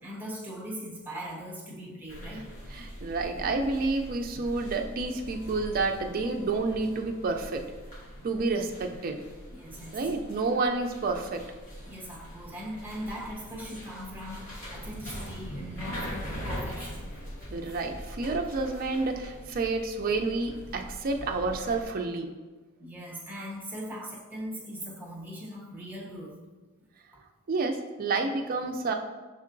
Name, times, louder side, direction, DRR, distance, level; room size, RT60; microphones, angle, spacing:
voice 1, 0.0-2.5 9.5-10.0 11.9-17.1 22.8-26.3, equal, 10° right, -4 dB, 0.7 m, -40 dB
sound 1, 2.1-21.9, equal, 35° left, 1.1 m, -42 dB
voice 2, 2.7-7.7 8.2-9.2 9.9-11.4 17.5-22.3 27.5-28.9, right 3 dB, 40° right, 4 dB, 0.3 m, -29 dB
5.4 x 3.6 x 2.5 m, 1.3 s
head